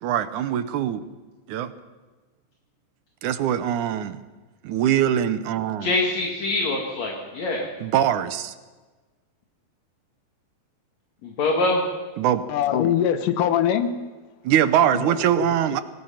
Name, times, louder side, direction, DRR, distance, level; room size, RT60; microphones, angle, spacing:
voice 1, 0.0-1.0 1.5-1.7 3.2-4.2 4.6-5.9 7.8-8.5 12.2-12.4 14.4-15.8, right 10 dB, 70° right, 12 dB, 2.1 m, -22 dB
voice 2, 5.8-7.7 11.2-11.8, left 2 dB, 50° left, 1 dB, 3.1 m, -24 dB
voice 3, 12.5-14.0 14.9-15.5, left 9 dB, 70° left, 10 dB, 2.4 m, -23 dB
27.0 x 19.0 x 5.8 m, 1.3 s
omnidirectional pair, 4.2 m